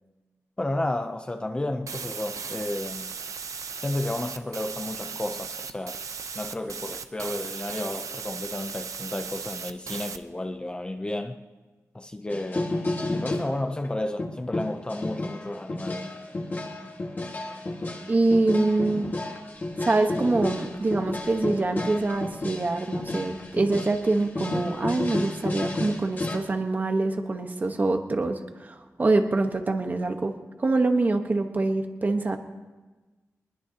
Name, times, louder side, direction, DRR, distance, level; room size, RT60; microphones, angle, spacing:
voice 1, 0.6-3.1 3.8-6.0 6.3-11.4 11.9-12.7 13.1-16.1, left 1 dB, 20° left, 0.6 m, -32 dB
sound 1, 1.9-10.2, right 5 dB, 80° right, 0.8 m, -37 dB
sound 2, 12.3-13.5 13.8-13.9 14.2-26.4, left 2 dB, 35° left, 1.8 m, -31 dB
voice 2, 18.1-19.1 19.8-30.3 30.6-32.4, right 2 dB, 30° right, 1.2 m, -25 dB
23.5 x 21.0 x 2.9 m
wide cardioid pair, 180°, 5 cm